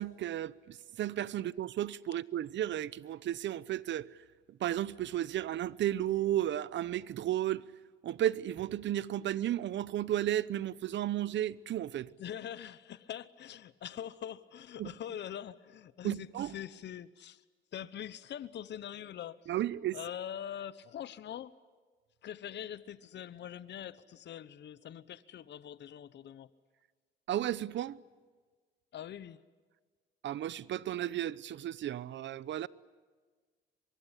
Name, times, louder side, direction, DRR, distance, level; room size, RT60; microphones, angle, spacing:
voice 1, 0.0-4.1 4.5-7.6 8.0-12.1 14.8-14.9 16.0-16.5 19.5-20.0 27.3-28.0 30.2-32.7, right 12 dB, 70° right, 0.8 m, -33 dB
voice 2, 12.2-17.4 17.7-19.5 19.9-21.5 22.2-26.5 28.9-29.4, left 10 dB, 60° left, 1.0 m, -43 dB
24.0 x 23.0 x 9.9 m
cardioid pair, 90°, 20 cm